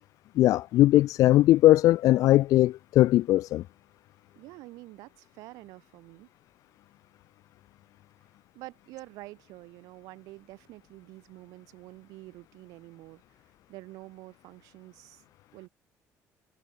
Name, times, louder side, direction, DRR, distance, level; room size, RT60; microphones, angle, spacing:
voice 1, 0.4-3.6, left 15 dB, 70° left, 0.9 m, -20 dB
voice 2, 4.4-6.3 8.5-13.2 13.7-15.2 15.5-15.7, right 20 dB, 90° right, 6.2 m, -47 dB
cardioid pair, 115°, 6 cm